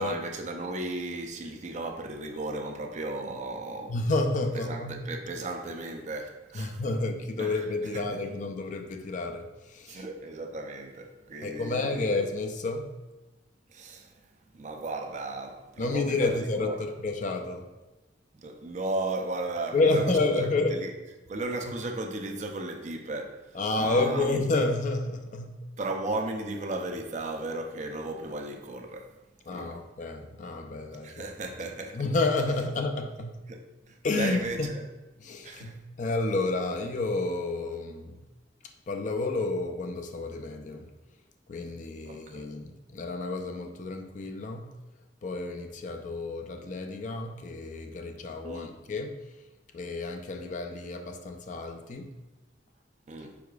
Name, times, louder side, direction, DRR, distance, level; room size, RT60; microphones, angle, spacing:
voice 1, 0.0-4.0 4.5-6.8 7.4-7.7 7.9-8.2 9.9-12.1 13.7-14.3 14.5-16.9 18.3-20.9 21.3-24.4 25.8-29.1 29.5-29.8 31.0-32.0 33.5-34.8 35.4-35.8 42.1-42.5 48.4-48.8 53.1-53.4, right 2 dB, 40° right, 0.5 m, -35 dB
voice 2, 3.9-5.0 6.5-10.0 11.4-12.9 15.8-17.7 19.7-20.8 23.5-25.6 29.5-31.2 31.9-33.4 34.0-34.7 35.2-38.2 38.9-40.8 41.5-44.7 45.2-49.2 49.7-52.1, left 2 dB, 45° left, 0.4 m, -30 dB
4.8 x 4.8 x 2.3 m
head